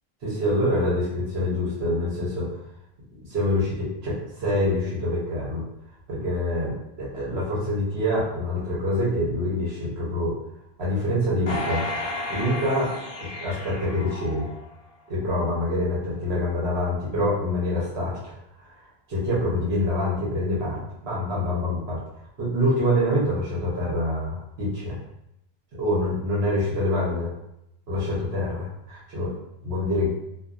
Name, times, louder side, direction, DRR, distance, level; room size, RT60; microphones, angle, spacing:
voice 1, 0.2-2.5 3.3-5.6 6.1-10.4 10.8-11.9 12.3-12.9 13.4-14.5 15.1-18.3 19.1-22.0 22.4-25.0 25.8-27.3 27.9-29.3 29.6-30.1, left 1 dB, 80° right, -6 dB, 1.2 m, -25 dB
sound 1, 11.5-14.9 15.4-15.5, left 1 dB, 45° left, 0.6 m, -33 dB
2.5 x 2.4 x 2.4 m, 0.82 s
omnidirectional pair, 1.0 m